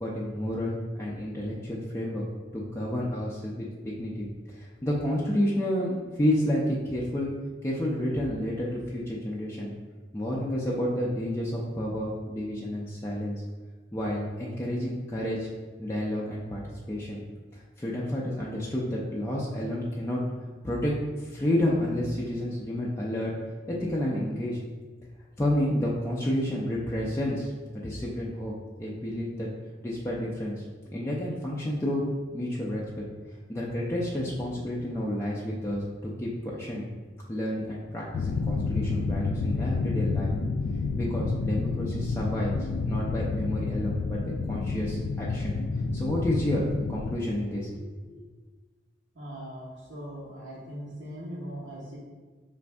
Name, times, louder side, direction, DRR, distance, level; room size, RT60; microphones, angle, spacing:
voice 1, 0.0-2.2 2.5-7.3 7.6-9.7 10.1-13.4 13.9-15.5 15.8-16.6 16.9-17.2 17.5-20.2 20.6-20.9 21.2-23.3 23.7-24.6 25.4-28.5 28.8-29.5 29.8-30.6 30.9-32.0 32.3-33.0 33.5-35.8 36.2-36.9 37.3-40.3 41.0-42.5 42.8-45.6 45.9-46.6 46.9-48.1, left 1 dB, 15° left, -6 dB, 0.4 m, -30 dB
sound 1, 38.1-47.1, left 3 dB, 75° left, 0.3 m, -29 dB
voice 2, 49.1-52.0, equal, 90° right, -8 dB, 1.1 m, -40 dB
5.0 x 2.6 x 3.3 m, 1.3 s
head